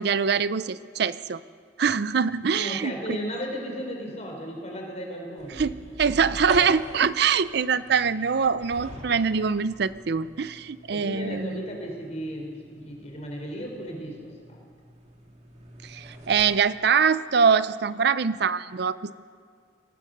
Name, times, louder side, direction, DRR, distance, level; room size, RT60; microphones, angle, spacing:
voice 1, 0.0-1.4 1.8-3.2 5.5-11.6 15.8-19.1, right 6 dB, 60° right, 15 dB, 0.5 m, -24 dB
voice 2, 2.5-5.7 10.9-14.6, equal, 35° left, 1 dB, 4.4 m, -35 dB
sound 1, 5.4-16.6, right 1 dB, 40° right, 2.6 m, -44 dB
23.0 x 17.5 x 6.6 m, 2.1 s
head